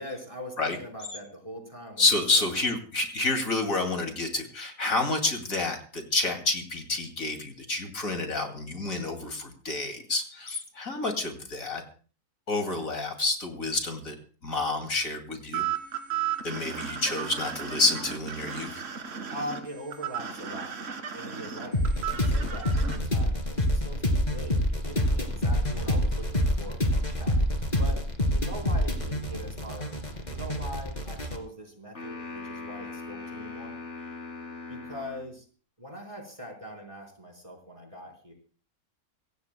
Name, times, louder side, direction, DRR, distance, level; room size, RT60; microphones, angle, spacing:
voice 1, 0.0-2.0 2.3-2.4 19.3-20.7 21.1-27.4 27.8-28.0 28.3-29.9 30.3-33.8 34.7-35.4 35.8-38.3, equal, 20° right, 1 dB, 4.3 m, -42 dB
voice 2, 2.0-11.8 12.5-14.1 14.4-15.6 16.4-18.8, left 2 dB, 65° left, 5 dB, 2.9 m, -29 dB
sound 1, 15.5-23.0, right 9 dB, 55° right, 2.3 m, -34 dB
sound 2, 21.7-31.4, equal, 30° left, 2.6 m, -27 dB
sound 3, 31.9-35.3, left 3 dB, 50° left, 3.2 m, -40 dB
25.0 x 16.5 x 2.2 m, 0.39 s
omnidirectional pair, 1.6 m